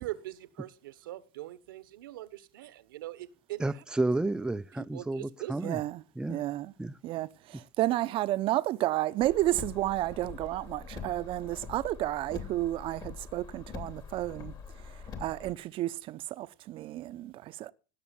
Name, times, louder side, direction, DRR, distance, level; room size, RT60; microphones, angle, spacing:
voice 1, 0.0-3.6 4.8-5.6, right 16 dB, 90° right, 1.4 m, -42 dB
voice 2, 3.6-5.8 6.2-6.4 6.8-7.0, right 2 dB, 5° right, 0.6 m, -31 dB
voice 3, 5.6-6.0 6.3-6.7 7.0-17.7, right 15 dB, 55° right, 0.8 m, -32 dB
Car, 9.2-15.5, left 6 dB, 40° left, 3.2 m, -44 dB
18.0 x 7.1 x 7.1 m
supercardioid pair, 95°, 11 cm